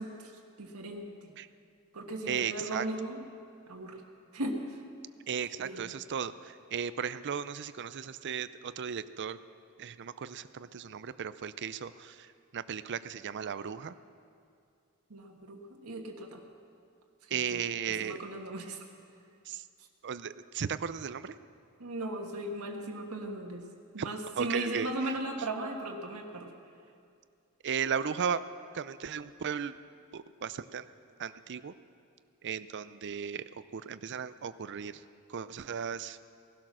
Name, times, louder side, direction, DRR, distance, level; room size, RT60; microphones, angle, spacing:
voice 1, 0.0-1.3 1.9-3.2 3.7-4.0 4.3-4.8 5.6-5.8 15.1-16.4 17.2-17.6 17.8-18.9 21.8-23.7 23.9-26.5, right 1 dB, 90° right, 1 dB, 1.5 m, -37 dB
voice 2, 2.3-2.8 5.3-9.4 9.8-12.3 12.5-13.9 17.3-18.2 19.5-19.6 20.0-21.3 24.4-24.9 27.6-28.4 28.7-29.7 30.1-30.9 31.2-31.7 32.4-33.4 33.7-34.9 35.3-36.2, right 7 dB, 55° right, 14 dB, 0.5 m, -35 dB
18.0 x 12.0 x 6.2 m, 2.4 s
head